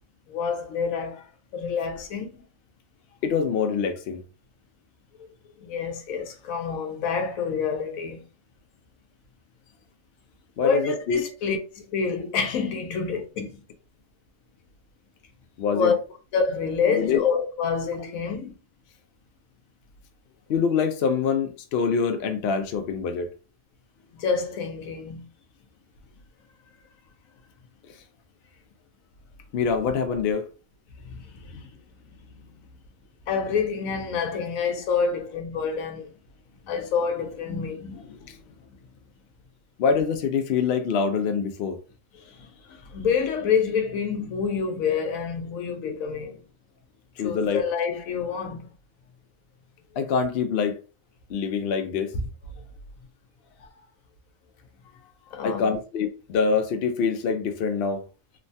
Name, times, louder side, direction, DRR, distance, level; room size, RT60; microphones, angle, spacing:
voice 1, 0.3-1.2 1.5-2.4 5.2-5.3 5.6-8.2 10.6-13.6 15.7-16.0 16.3-18.5 24.1-25.2 31.0-31.7 33.3-36.1 36.6-38.4 42.2-46.4 47.2-48.7 53.6-53.7 55.3-55.8, left 6 dB, 90° left, 1.0 m, -27 dB
voice 2, 3.2-4.2 10.6-11.2 15.6-15.9 16.9-17.2 20.5-23.3 29.5-30.5 35.0-35.1 39.8-41.8 47.2-47.6 50.0-50.8 51.3-52.1 55.4-58.0, left 5 dB, 65° left, 0.6 m, -25 dB
3.1 x 2.1 x 2.6 m
omnidirectional pair, 1.4 m